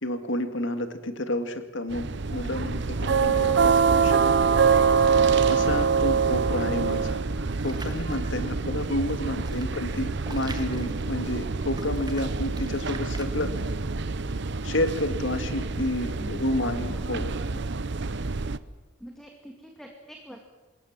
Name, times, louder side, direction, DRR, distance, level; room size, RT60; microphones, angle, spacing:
voice 1, 0.0-4.5 5.5-7.2 7.6-13.5 14.6-17.6, left 1 dB, 60° left, 8 dB, 2.2 m, -30 dB
sound 1, 1.9-18.6, right 5 dB, 55° right, 0.8 m, -25 dB
voice 2, 6.4-6.7 9.3-9.5 16.2-17.1 19.0-20.4, equal, ahead, 2 dB, 2.1 m, -44 dB
sound 2, 7.6-8.4 9.0-11.5 11.7-13.7, right 3 dB, 20° right, 1.6 m, -44 dB
26.5 x 21.0 x 7.5 m, 1.2 s
head